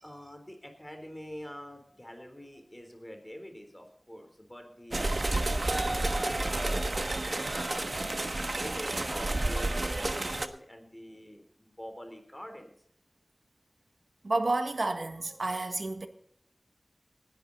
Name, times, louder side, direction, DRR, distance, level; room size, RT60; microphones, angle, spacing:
voice 1, 0.0-7.9 8.6-12.7, equal, 15° left, 3.8 m, -46 dB
sound 1, 4.9-10.5, right 2 dB, 55° right, 1.2 m, -30 dB
voice 2, 14.2-16.1, right 2 dB, 75° right, 1.5 m, -30 dB
19.0 x 11.5 x 4.2 m
wide cardioid pair, 50°, 0 cm